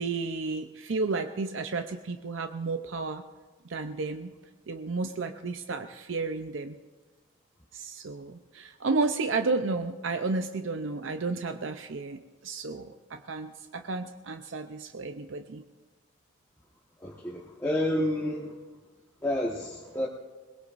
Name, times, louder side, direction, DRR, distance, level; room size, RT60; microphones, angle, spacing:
voice 1, 0.0-3.2 3.7-4.3 4.7-6.8 7.7-15.6, right 3 dB, 75° right, 7 dB, 0.6 m, -32 dB
voice 2, 17.0-18.5 19.2-20.1, left 1 dB, 10° left, -4 dB, 1.3 m, -29 dB
22.0 x 20.0 x 2.6 m, 1.3 s
head